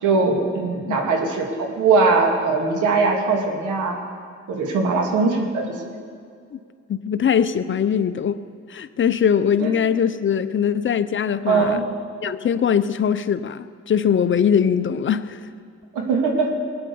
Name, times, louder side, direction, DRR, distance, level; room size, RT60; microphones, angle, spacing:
voice 1, 0.0-4.0 4.5-5.7 9.6-9.7 11.5-11.8 15.9-16.5, right 4 dB, 80° right, 2 dB, 2.6 m, -20 dB
voice 2, 5.2-5.5 6.5-6.6 6.9-8.4 8.7-11.8 12.2-15.5, left 8 dB, 40° left, 12 dB, 0.7 m, -21 dB
20.5 x 9.6 x 7.0 m, 2.2 s
cardioid pair, 90°, 30 cm